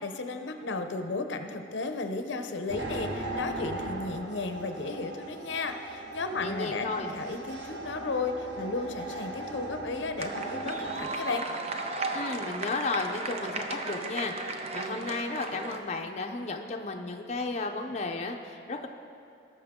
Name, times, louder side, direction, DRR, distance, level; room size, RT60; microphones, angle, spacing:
voice 1, 0.0-11.5, left 3 dB, 85° left, 7 dB, 0.7 m, -34 dB
sound 1, 2.7-11.1, right 2 dB, 75° right, 1.4 m, -38 dB
voice 2, 6.4-7.1 12.1-18.9, left 3 dB, 35° left, 3 dB, 0.6 m, -34 dB
sound 2, 10.2-15.8, right 3 dB, 35° right, 0.7 m, -35 dB
19.0 x 6.7 x 3.7 m, 2.5 s
head